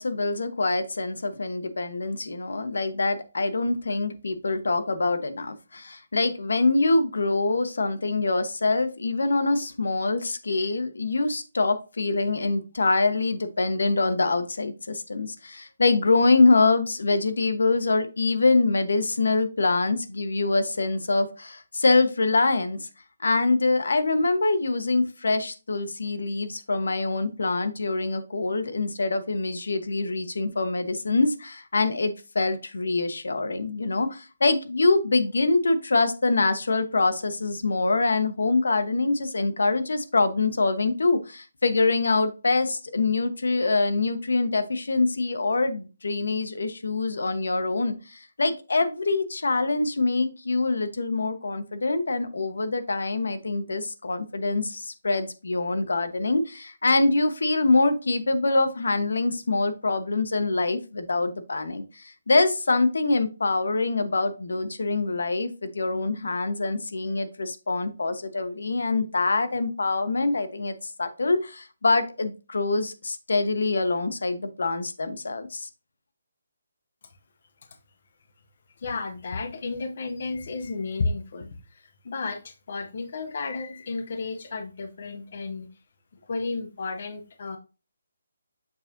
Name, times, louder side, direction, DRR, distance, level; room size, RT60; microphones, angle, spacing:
voice 1, 0.0-22.9 23.2-75.7, left 3 dB, 80° left, 10 dB, 1.0 m, -24 dB
voice 2, 78.8-85.7 86.3-87.6, left 3 dB, 35° left, 7 dB, 0.6 m, -32 dB
6.7 x 5.4 x 2.6 m, 0.31 s
hypercardioid pair, 180°, 0 cm